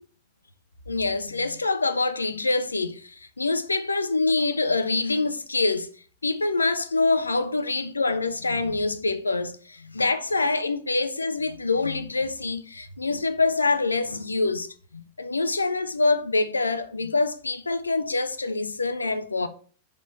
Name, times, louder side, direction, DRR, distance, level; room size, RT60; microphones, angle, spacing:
voice 1, 0.9-5.9 6.2-9.6 9.9-19.5, left 3 dB, 80° left, 0.5 m, -25 dB
5.2 x 5.1 x 5.6 m
figure-of-eight pair, 90°, 0 cm